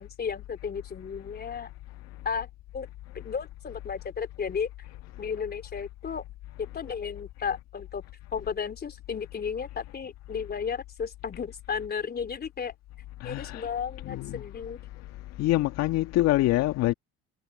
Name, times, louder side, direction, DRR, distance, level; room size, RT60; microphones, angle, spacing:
voice 1, 0.0-1.7 2.3-2.5 2.7-2.9 3.1-4.7 5.2-6.2 6.6-8.0 8.3-12.7 13.2-14.8, left 6 dB, 35° left, 3.7 m, -34 dB
voice 2, 13.2-13.7 14.1-14.4 15.4-16.9, left 16 dB, 60° left, 1.9 m, -25 dB
hypercardioid pair, 70°, 29 cm